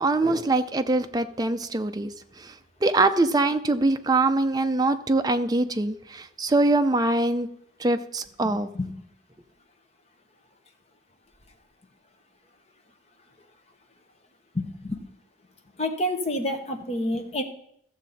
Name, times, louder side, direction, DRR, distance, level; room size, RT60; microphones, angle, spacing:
voice 1, 0.0-2.1 2.4-2.5 2.8-7.5 7.8-8.7, right 2 dB, 20° right, 8 dB, 0.5 m, -23 dB
voice 2, 8.5-8.9 14.5-15.0 15.8-17.4, left 1 dB, 35° left, 5 dB, 1.1 m, -28 dB
14.5 x 7.3 x 4.1 m, 0.68 s
head